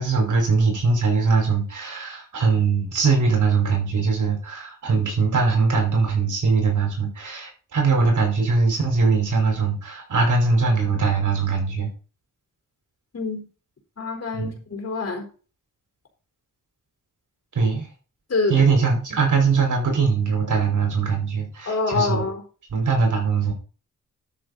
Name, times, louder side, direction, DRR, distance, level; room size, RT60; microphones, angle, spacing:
voice 1, 0.0-11.9 14.3-14.6 17.6-17.9 18.5-22.2 22.7-23.5, right 4 dB, 70° right, 5.1 m, -21 dB
voice 2, 13.1-13.5 14.0-15.3 18.3-18.6 21.7-22.4, left 3 dB, 50° left, 4.3 m, -26 dB
12.5 x 6.7 x 4.2 m
wide cardioid pair, 95°, 32 cm